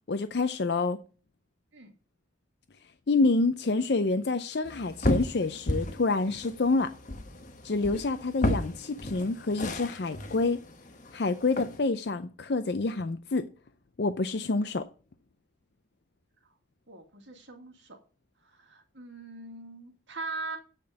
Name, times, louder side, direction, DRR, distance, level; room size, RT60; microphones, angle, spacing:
voice 1, 0.1-1.0 3.1-6.9 7.6-10.6 11.1-13.5 14.0-14.9, left 3 dB, 60° left, 0.5 m, -27 dB
sound 1, 4.7-11.8, left 1 dB, 40° left, 1.1 m, -33 dB
voice 2, 16.9-18.0 18.4-20.6, right 3 dB, 80° right, 2.2 m, -41 dB
9.1 x 5.2 x 7.9 m
head